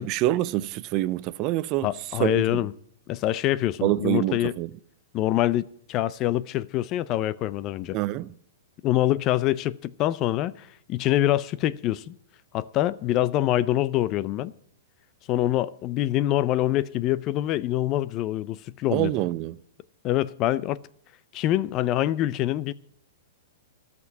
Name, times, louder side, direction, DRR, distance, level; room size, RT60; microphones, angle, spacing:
voice 1, 0.0-1.9 2.2-2.6 3.8-4.7 7.9-8.3 18.9-19.6, right 16 dB, 40° right, 0.5 m, -26 dB
voice 2, 1.8-2.7 3.1-4.5 5.1-8.0 8.8-12.1 12.5-14.5 15.3-19.1 20.0-20.8 21.3-22.7, left 14 dB, 35° left, 0.4 m, -25 dB
13.0 x 6.0 x 9.3 m
hypercardioid pair, 140°, 0 cm